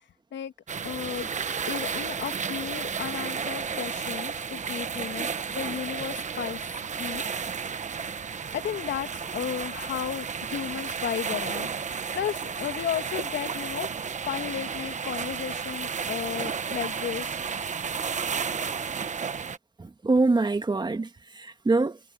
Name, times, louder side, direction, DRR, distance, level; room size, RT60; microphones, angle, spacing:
sound 1, 0.7-19.6, right 6 dB, 35° right, 1.2 m, -32 dB
voice 1, 0.8-1.3 1.7-6.6 7.0-7.2 8.5-11.7 12.1-13.9 14.3-17.4, left 9 dB, 65° left, 2.7 m, -34 dB
voice 2, 19.8-22.0, right 3 dB, 20° right, 2.0 m, -25 dB
cardioid pair, 90°, 20 cm